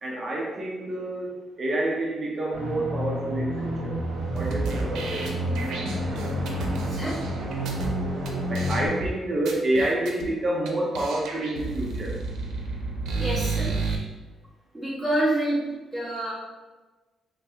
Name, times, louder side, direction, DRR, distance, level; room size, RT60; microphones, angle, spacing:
voice 1, 0.0-3.9 4.3-7.0 8.5-12.2, right 1 dB, 30° right, -2 dB, 0.5 m, -29 dB
sound 1, 2.5-8.9, equal, 70° right, 1.0 m, -30 dB
sound 2, 4.4-7.9 8.3-8.4 8.5-9.1 9.5-10.3 10.7-10.8 10.9-14.0, right 4 dB, 90° right, 0.6 m, -31 dB
voice 2, 6.9-7.2 13.1-13.8 14.7-16.3, right 1 dB, 5° right, -8 dB, 1.2 m, -28 dB
3.9 x 3.1 x 2.8 m, 1.2 s
cardioid pair, 160°, 0 cm